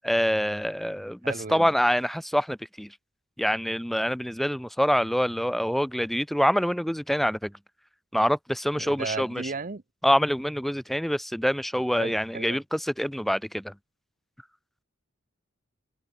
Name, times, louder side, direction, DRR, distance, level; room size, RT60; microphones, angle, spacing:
voice 1, 0.0-2.9 3.4-7.5 8.1-9.4 10.0-13.7, equal, ahead, 0.6 m, -26 dB
voice 2, 1.2-1.7 8.8-9.8 12.0-12.6, right 4 dB, 45° right, 0.9 m, -35 dB
head